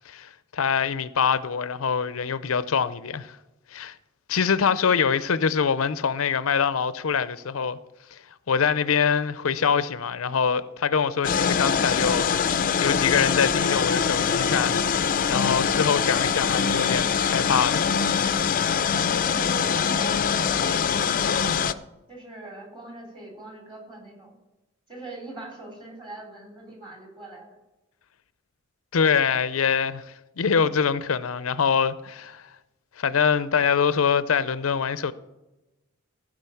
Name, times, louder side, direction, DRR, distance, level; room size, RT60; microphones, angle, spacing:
voice 1, 0.1-3.4 3.7-3.9 4.3-7.8 8.1-8.2 8.5-12.3 12.8-14.8 15.3-17.8 28.9-30.0 30.4-32.4 33.0-35.1, left 6 dB, 90° left, 0.6 m, -24 dB
sound 1, 11.2-21.7, left 6 dB, 40° left, 0.5 m, -23 dB
voice 2, 18.8-21.7 22.1-24.3 24.9-27.6, right 2 dB, 25° right, 3.4 m, -42 dB
15.5 x 5.1 x 7.0 m
head